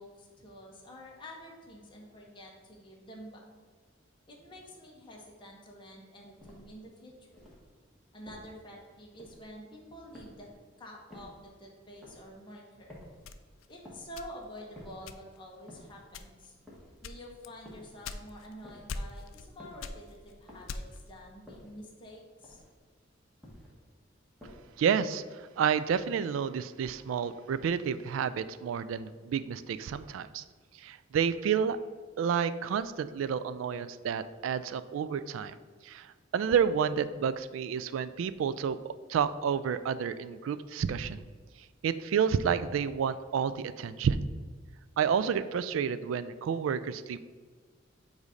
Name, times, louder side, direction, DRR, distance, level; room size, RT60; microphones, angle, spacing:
voice 1, 0.0-3.4 4.3-7.3 8.1-10.5 10.8-13.0 13.7-16.6 17.0-22.6, equal, 25° left, -2 dB, 1.0 m, -48 dB
sound 1, 6.4-6.8 7.3-7.7 8.3-8.6 9.2-9.6 10.1-10.6 11.1-11.5 12.0-12.4 12.9-13.3 13.8-14.2 14.7-15.1 15.7-16.1 16.7-17.1 17.7-18.0 18.6-19.0 19.6-19.9 20.5-20.9 21.5-21.9 22.4-22.8 23.4-23.8 24.4-24.8, left 1 dB, ahead, 1.4 m, -52 dB
sound 2, 13.2-14.6 15.1-15.5 16.1-16.5 17.0-18.5 18.9-19.5 19.8-21.1, left 4 dB, 85° left, 0.4 m, -41 dB
voice 2, 24.8-30.4 30.8-31.8 32.2-35.6 35.8-36.1 36.3-38.8 39.1-41.2 41.8-44.3 45.0-47.2, right 7 dB, 80° right, 15 dB, 0.3 m, -30 dB
8.1 x 2.7 x 4.9 m, 1.5 s
head